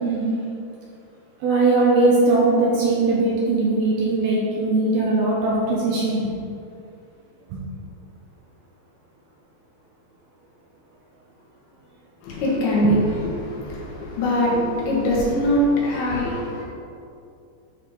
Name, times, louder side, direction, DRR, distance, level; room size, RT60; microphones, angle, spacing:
voice 1, 1.4-6.3 7.5-7.6, right 2 dB, 75° right, -4 dB, 2.5 m, -20 dB
voice 2, 12.2-16.6, equal, 80° left, -5 dB, 3.9 m, -22 dB
11.5 x 4.9 x 3.7 m, 2.5 s
omnidirectional pair, 5.2 m